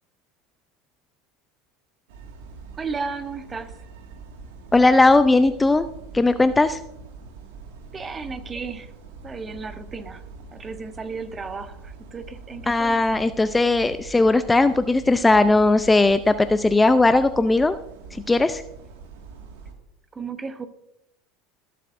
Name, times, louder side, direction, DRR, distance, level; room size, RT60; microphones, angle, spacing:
sound 1, 2.1-19.7, right 4 dB, 80° right, 1.8 m, -43 dB
voice 1, 2.8-3.8 7.9-8.9 9.2-10.2 10.5-13.0 20.1-20.7, right 4 dB, 25° right, 10 dB, 1.0 m, -34 dB
voice 2, 4.7-5.9 6.1-6.8 12.7-17.8 18.3-18.6, left 2 dB, 15° left, 11 dB, 0.5 m, -18 dB
20.0 x 7.6 x 2.6 m, 0.83 s
hypercardioid pair, 95°, 0 cm